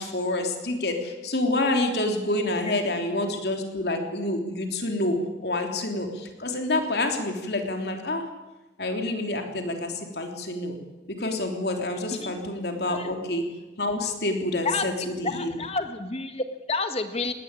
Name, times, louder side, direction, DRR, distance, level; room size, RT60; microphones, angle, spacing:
voice 1, 0.0-8.3 8.8-10.8 11.1-13.5 13.8-15.6, left 2 dB, 65° left, 4 dB, 3.3 m, -28 dB
voice 2, 14.6-17.3, left 3 dB, 35° left, 8 dB, 1.6 m, -30 dB
19.5 x 18.5 x 9.8 m, 1.1 s
head